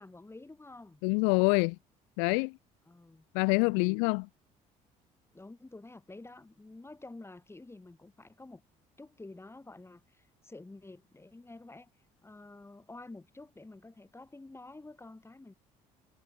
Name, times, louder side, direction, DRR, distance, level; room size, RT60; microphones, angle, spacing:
voice 1, 0.0-1.0 2.9-3.3 5.3-8.6 9.0-11.9 12.2-15.5, left 2 dB, 15° left, 2.9 m, -50 dB
voice 2, 1.0-1.8 2.2-2.6 3.3-4.3, left 40 dB or more, 85° left, 0.4 m, -26 dB
supercardioid pair, 70°, 17 cm